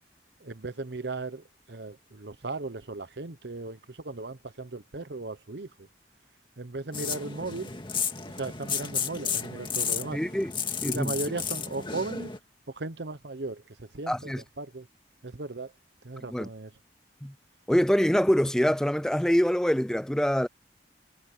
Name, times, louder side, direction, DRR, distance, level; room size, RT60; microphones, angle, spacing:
voice 1, 0.4-5.9 6.6-7.7 8.4-10.2 10.8-12.3 12.7-14.9 15.2-15.7 16.0-16.7, right 3 dB, 70° right, 1.0 m, -37 dB
sound 1, 6.9-12.4, left 6 dB, 25° left, 2.1 m, -33 dB
voice 2, 10.1-10.5 10.8-11.1 14.1-14.4 16.3-16.5 17.2-17.3 17.7-20.5, equal, 5° left, 0.4 m, -24 dB
head